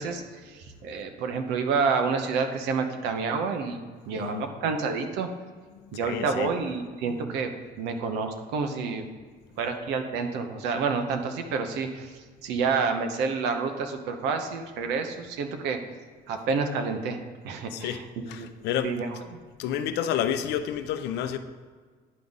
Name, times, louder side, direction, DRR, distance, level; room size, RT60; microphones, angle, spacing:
voice 1, 0.0-5.3 5.9-7.5 7.8-9.1 9.6-15.8 16.3-17.2 17.4-18.0 18.4-18.5 18.8-19.3, right 5 dB, 90° right, 6 dB, 0.8 m, -29 dB
voice 2, 6.0-6.5 17.7-18.0 18.3-18.9 19.6-21.4, left 9 dB, 85° left, 9 dB, 0.6 m, -29 dB
10.5 x 4.0 x 3.6 m, 1.5 s
cardioid pair, 110°, 17 cm